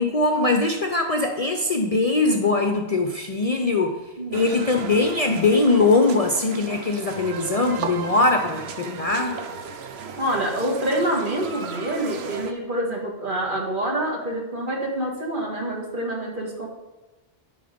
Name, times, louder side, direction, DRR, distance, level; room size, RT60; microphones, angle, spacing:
voice 1, 0.0-4.0 4.3-9.4, left 3 dB, 40° left, 4 dB, 0.6 m, -21 dB
voice 2, 4.2-4.5 10.2-16.7, right 1 dB, 50° right, -1 dB, 1.8 m, -26 dB
sound 1, 4.3-12.5, right 5 dB, 70° right, 1.0 m, -35 dB
11.5 x 4.0 x 5.1 m, 1.1 s
omnidirectional pair, 1.1 m